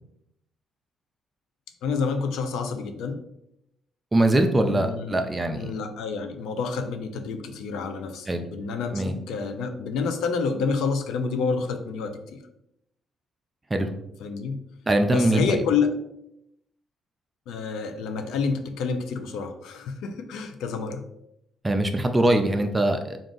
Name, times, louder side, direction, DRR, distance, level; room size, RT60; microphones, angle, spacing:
voice 1, 1.8-3.2 4.6-5.2 5.5-12.4 14.2-14.6 15.1-15.9 17.5-21.1, left 5 dB, 85° left, 7 dB, 0.4 m, -28 dB
voice 2, 4.1-5.7 8.3-8.4 8.9-9.2 13.7-13.9 14.9-15.6 21.6-23.2, right 1 dB, 20° right, 6 dB, 0.4 m, -22 dB
3.7 x 2.5 x 3.8 m, 0.81 s
cardioid pair, 90°, 0 cm